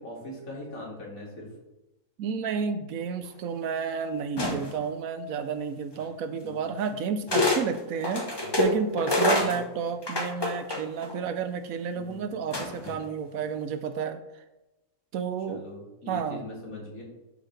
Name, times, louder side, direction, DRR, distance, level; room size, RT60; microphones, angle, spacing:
voice 1, 0.0-1.5 6.3-6.6 8.4-8.5 9.3-9.6 11.9-12.2 13.5-13.6 15.5-17.0, left 1 dB, 75° left, -3 dB, 2.5 m, -41 dB
voice 2, 2.2-8.3 8.6-14.4 15.1-15.6 16.1-16.5, right 6 dB, 80° right, 9 dB, 1.1 m, -31 dB
sound 1, 4.4-4.9 6.0-6.1 7.3-7.6 8.0-11.1 12.5-13.0, left 1 dB, 20° left, 0.8 m, -26 dB
12.0 x 4.1 x 3.2 m, 0.98 s
omnidirectional pair, 1.5 m